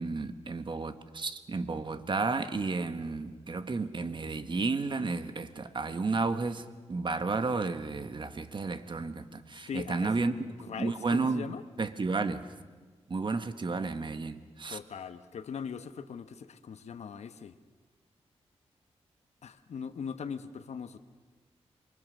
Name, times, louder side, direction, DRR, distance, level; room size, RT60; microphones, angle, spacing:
voice 1, 0.0-10.3 10.8-11.5 11.8-12.4 13.1-14.8, right 3 dB, 45° right, 1.6 m, -32 dB
voice 2, 9.6-11.6 14.7-17.6 19.4-21.0, left 6 dB, 75° left, 1.1 m, -40 dB
28.0 x 24.0 x 6.5 m
cardioid pair, 85°, 11 cm